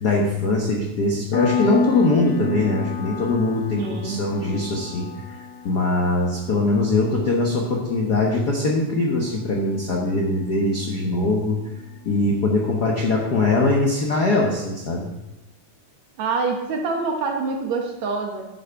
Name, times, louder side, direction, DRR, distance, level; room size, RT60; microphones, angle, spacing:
voice 1, 0.0-5.4 5.6-11.6 12.0-15.1, left 2 dB, 75° left, -1 dB, 0.9 m, -22 dB
Piano, 1.3-11.7, left 5 dB, 55° left, 2.2 m, -32 dB
voice 2, 3.8-4.7 16.2-18.5, right 4 dB, 70° right, 2 dB, 2.1 m, -26 dB
10.5 x 6.9 x 4.6 m, 0.96 s
omnidirectional pair, 3.6 m